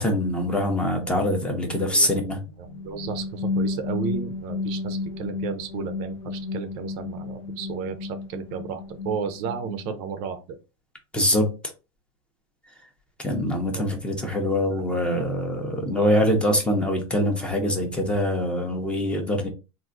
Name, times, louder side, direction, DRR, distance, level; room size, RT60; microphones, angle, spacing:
voice 1, 0.0-2.4 11.1-11.5 13.2-19.5, left 1 dB, 5° left, 0.5 m, -24 dB
sound 1, 2.5-10.3, left 3 dB, 70° left, 0.4 m, -32 dB
voice 2, 2.6-10.6 13.7-13.8 14.7-14.9 15.4-15.5 15.9-16.3, right 7 dB, 45° right, 0.5 m, -33 dB
3.5 x 2.5 x 2.5 m
supercardioid pair, 160°, 14 cm